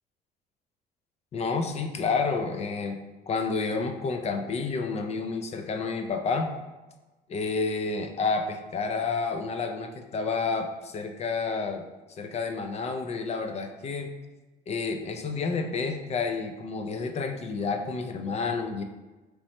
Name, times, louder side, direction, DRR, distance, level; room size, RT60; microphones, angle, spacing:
voice 1, 1.3-3.0 3.3-6.5 7.3-11.8 12.2-14.1 14.7-18.8, left 4 dB, 40° left, 6 dB, 0.4 m, -30 dB
3.1 x 3.0 x 4.1 m, 1.1 s
cardioid pair, 110°, 17 cm